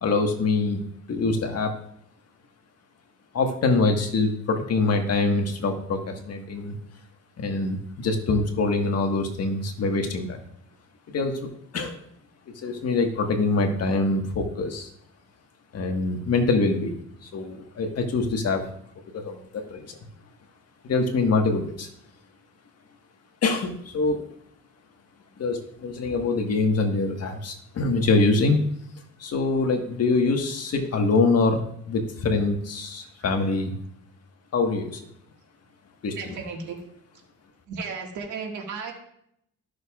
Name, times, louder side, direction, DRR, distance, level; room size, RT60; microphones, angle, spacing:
voice 1, 0.0-0.8 1.1-1.7 3.3-6.7 7.4-10.4 11.1-11.4 11.7-12.0 12.6-14.9 15.7-16.9 17.3-18.6 19.1-19.9 20.8-21.9 23.4-24.2 25.4-28.6 29.2-33.7 34.5-35.0 36.0-36.1, left 3 dB, 55° left, 4 dB, 1.5 m, -24 dB
voice 2, 33.2-33.5 36.2-36.9 37.7-38.9, right 5 dB, 75° right, 1 dB, 1.9 m, -35 dB
13.5 x 6.5 x 2.4 m, 0.72 s
cardioid pair, 90°, 30 cm